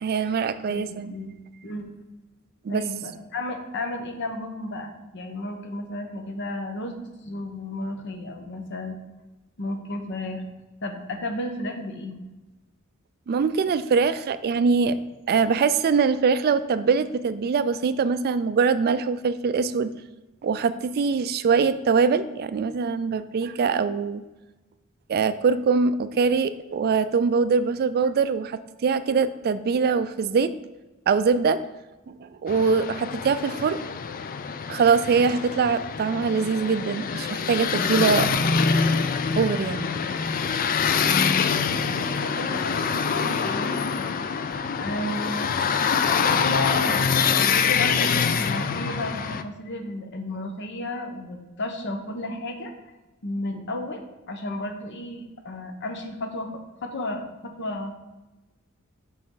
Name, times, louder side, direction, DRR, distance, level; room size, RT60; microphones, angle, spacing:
voice 1, 0.0-1.1 2.6-2.8 13.3-15.0 15.3-19.9 20.4-24.2 25.1-30.5 31.1-31.6 32.1-33.8 34.7-38.3 39.4-39.9 40.4-40.5, right 5 dB, 45° right, 13 dB, 0.3 m, -23 dB
voice 2, 0.7-1.3 1.6-2.0 2.7-9.0 9.6-10.4 10.8-12.2 41.8-44.2 44.7-45.5 46.2-52.7 53.2-57.9, left 1 dB, 55° left, 5 dB, 0.9 m, -33 dB
sound 1, 32.5-49.4, left 6 dB, 40° left, 0.4 m, -25 dB
6.5 x 5.6 x 3.8 m, 1.1 s
head